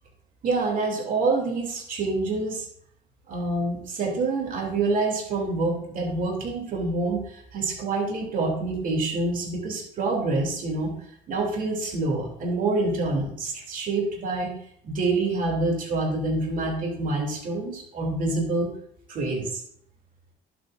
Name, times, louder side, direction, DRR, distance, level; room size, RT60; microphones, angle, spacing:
voice 1, 0.4-2.7 3.3-11.0 11.3-14.5 14.8-18.7 19.1-19.6, right 3 dB, 55° right, 0 dB, 2.9 m, -26 dB
11.0 x 8.2 x 2.6 m, 0.63 s
cardioid pair, 110°, 17 cm